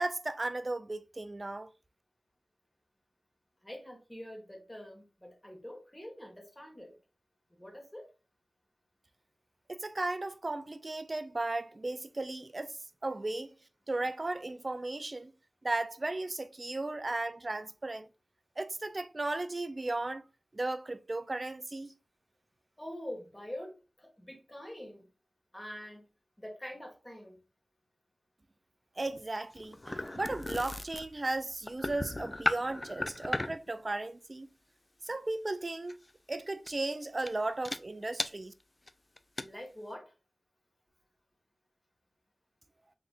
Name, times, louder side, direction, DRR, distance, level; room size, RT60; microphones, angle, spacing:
voice 1, 0.0-1.7 9.7-13.5 13.9-15.3 15.6-18.1 18.6-20.2 20.5-21.9 29.0-34.5 35.0-36.0 36.3-38.5, right 2 dB, 45° right, 0.4 m, -35 dB
voice 2, 3.6-7.0 7.5-8.1 22.8-25.1 25.5-26.1 26.4-27.4 39.4-40.1, left 1 dB, 15° left, 1.6 m, -45 dB
sound 1, 29.1-33.7 35.9-36.1 36.7-36.9 37.3-37.4 37.6-37.8 38.2-38.3 38.9-39.0 39.2-39.4, left 1 dB, 35° left, 0.4 m, -36 dB
3.8 x 3.4 x 2.4 m
cardioid pair, 45°, 0 cm